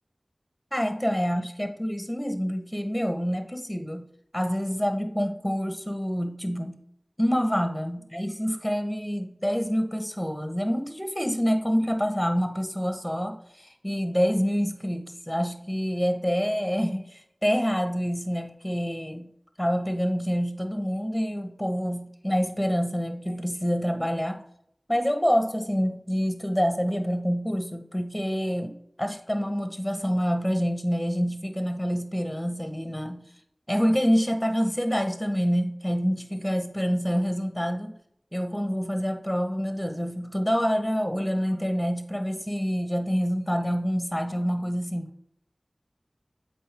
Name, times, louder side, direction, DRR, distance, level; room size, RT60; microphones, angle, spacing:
voice 1, 0.7-4.0 4.3-6.8 7.2-19.3 19.6-24.4 24.9-28.7 29.0-33.2 33.7-37.9 38.3-45.1, equal, 5° left, 6 dB, 1.0 m, -27 dB
7.8 x 4.4 x 3.4 m, 0.70 s
wide cardioid pair, 40°, 0 cm